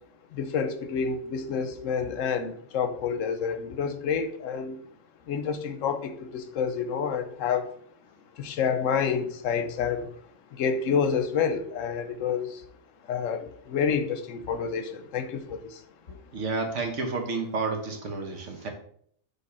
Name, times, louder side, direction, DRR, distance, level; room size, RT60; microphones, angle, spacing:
voice 1, 0.3-4.8 5.3-7.7 8.4-10.1 10.5-12.6 13.1-15.8, left 6 dB, 85° left, 9 dB, 1.1 m, -28 dB
voice 2, 16.1-18.7, right 3 dB, 70° right, 4 dB, 1.3 m, -31 dB
6.7 x 3.5 x 4.2 m, 0.62 s
omnidirectional pair, 1.3 m